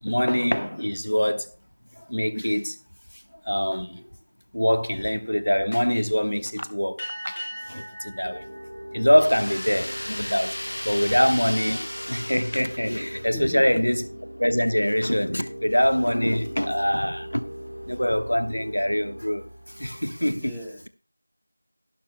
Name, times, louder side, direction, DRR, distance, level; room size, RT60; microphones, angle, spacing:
voice 1, 0.0-1.5 2.0-2.7 3.5-4.0 4.5-7.4 7.7-8.4 8.9-10.6 10.8-14.0 14.4-17.5 17.9-19.5 19.8-20.6, equal, 85° left, 1.2 m, -24 dB
sound 1, 7.0-9.9, equal, 25° left, 4.6 m, -39 dB
sound 2, 8.2-20.2, equal, 90° right, 1.2 m, -40 dB
sound 3, 9.2-13.3, left 1 dB, 70° left, 0.7 m, -35 dB
voice 2, 13.3-13.8 20.3-20.9, equal, ahead, 0.9 m, -38 dB
14.5 x 12.0 x 2.2 m
figure-of-eight pair, 175°, 0 cm